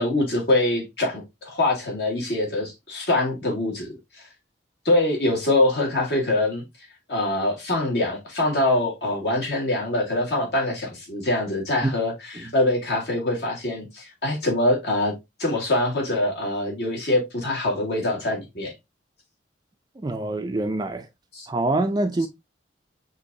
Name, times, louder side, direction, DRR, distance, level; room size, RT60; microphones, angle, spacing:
voice 1, 0.0-3.9 4.9-6.6 7.1-15.1 15.4-18.7 21.3-21.5, left 1 dB, 60° left, 2.2 m, -24 dB
voice 2, 20.0-21.1 21.5-22.3, right 2 dB, 20° right, 0.4 m, -25 dB
6.2 x 2.9 x 2.6 m
head